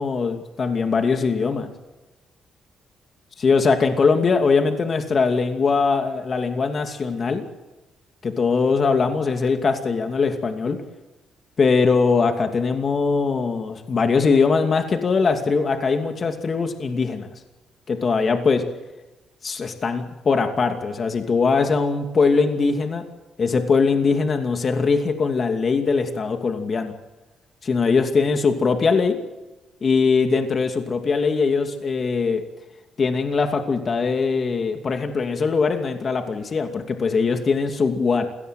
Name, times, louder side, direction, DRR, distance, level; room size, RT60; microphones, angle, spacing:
voice 1, 0.0-1.7 3.4-7.4 8.2-10.8 11.6-17.3 17.9-18.6 19.4-23.0 23.4-26.9 27.6-29.2 29.8-32.4 33.0-38.3, left 4 dB, 45° left, 5 dB, 2.5 m, -21 dB
27.0 x 17.5 x 7.8 m, 1.1 s
cardioid pair, 90°, 0 cm